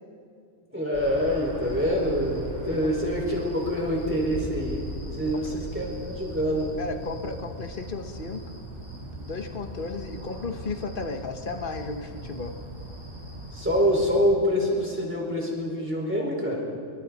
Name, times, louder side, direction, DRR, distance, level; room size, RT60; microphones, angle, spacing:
voice 1, 0.7-4.8 5.2-6.7 13.5-16.7, equal, 10° right, -2 dB, 5.1 m, -26 dB
sound 1, 0.9-14.2, equal, 60° right, 6.3 m, -39 dB
voice 2, 6.8-8.4 9.0-12.6, left 3 dB, 45° left, 6 dB, 1.4 m, -34 dB
26.5 x 24.5 x 4.2 m, 2.5 s
omnidirectional pair, 1.3 m